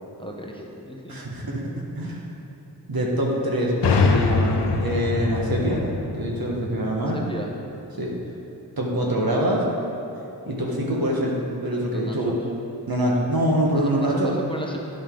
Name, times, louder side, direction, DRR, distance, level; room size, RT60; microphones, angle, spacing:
voice 1, 0.2-1.2 2.0-2.2 7.1-7.5 11.9-12.4 13.7-14.8, equal, 10° left, -1 dB, 0.8 m, -35 dB
voice 2, 1.1-1.6 2.0-2.2 2.9-5.8 6.1-7.2 8.0-8.1 8.8-9.7 10.5-11.3 11.6-12.3 12.9-14.3, right 1 dB, 55° right, -2 dB, 1.4 m, -24 dB
sound 1, 3.8-7.5, left 4 dB, 70° left, 0.6 m, -24 dB
10.0 x 5.3 x 3.8 m, 3.0 s
cardioid pair, 50°, 42 cm